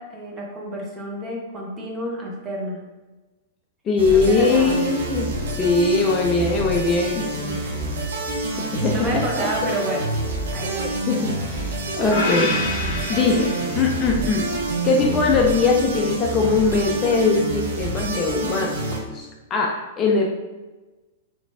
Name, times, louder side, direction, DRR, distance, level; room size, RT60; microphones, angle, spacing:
voice 1, 0.0-2.8 4.2-4.8 7.4-7.8 8.5-10.1 10.5-11.0, equal, 20° right, -2 dB, 0.9 m, -30 dB
voice 2, 3.9-5.3 5.6-7.2 7.6-7.8 8.7-9.5 10.7-12.5 13.1-14.5 14.8-18.7 19.1-20.3, left 4 dB, 25° left, 0 dB, 0.4 m, -21 dB
sound 1, 4.0-19.0, right 2 dB, 65° right, 0.8 m, -27 dB
sound 2, 12.1-14.3, left 2 dB, 45° left, 0.7 m, -28 dB
3.9 x 3.0 x 2.3 m, 1.2 s
figure-of-eight pair, 100°, 0 cm